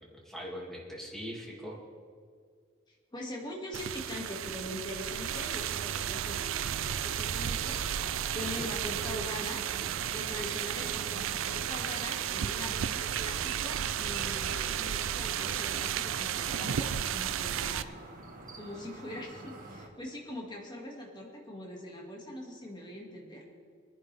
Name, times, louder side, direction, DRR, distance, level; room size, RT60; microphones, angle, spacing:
voice 1, 0.0-1.8 8.4-8.7, equal, ahead, -3 dB, 2.2 m, -41 dB
voice 2, 3.1-7.8 8.3-9.6 10.1-17.9 18.6-23.4, left 1 dB, 20° left, -1 dB, 2.1 m, -42 dB
sound 1, 3.7-17.8, right 9 dB, 70° right, 0.4 m, -33 dB
sound 2, 6.8-19.9, right 2 dB, 45° right, 1.7 m, -49 dB
23.0 x 10.5 x 3.4 m, 2.1 s
head